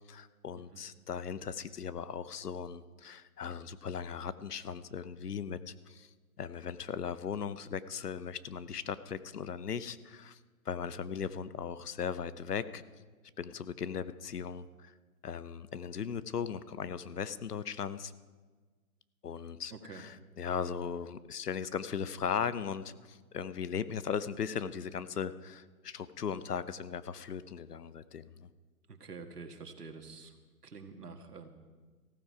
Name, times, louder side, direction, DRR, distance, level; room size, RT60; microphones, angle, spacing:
voice 1, 0.1-6.1 6.4-10.4 10.6-12.8 13.4-14.9 15.2-18.1 19.2-28.5, left 7 dB, 75° left, 15 dB, 0.9 m, -38 dB
voice 2, 19.7-20.0 28.9-30.3 30.6-31.5, right 4 dB, 75° right, 6 dB, 1.8 m, -47 dB
15.0 x 14.0 x 4.8 m, 1.4 s
hypercardioid pair, 175°, 47 cm